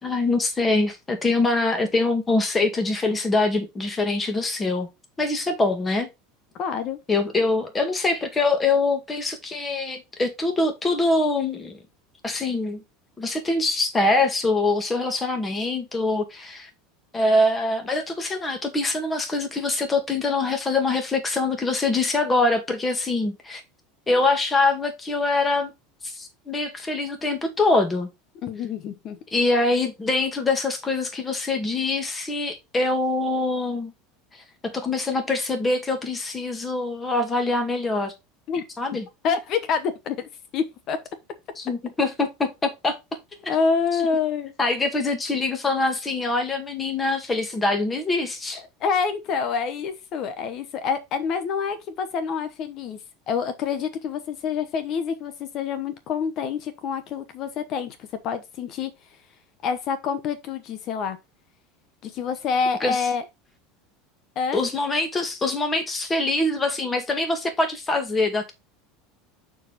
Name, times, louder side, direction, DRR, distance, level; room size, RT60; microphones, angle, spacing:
voice 1, 0.0-4.9 5.2-6.1 7.1-11.8 12.2-12.8 13.2-16.7 17.1-23.6 24.1-25.7 26.0-28.1 29.3-33.9 34.6-38.1 38.8-39.1 41.6-43.0 43.4-43.6 44.0-44.1 44.6-48.6 62.8-63.0 64.5-68.5, left 2 dB, 20° left, 2.0 m, -24 dB
voice 2, 6.5-7.0 28.4-29.2 38.5-38.6 39.2-41.0 43.5-44.5 48.8-53.0 53.3-58.9 59.6-61.2 62.0-63.2 64.4-64.6, left 6 dB, 50° left, 1.0 m, -27 dB
5.9 x 4.7 x 4.2 m
supercardioid pair, 105°, 0 cm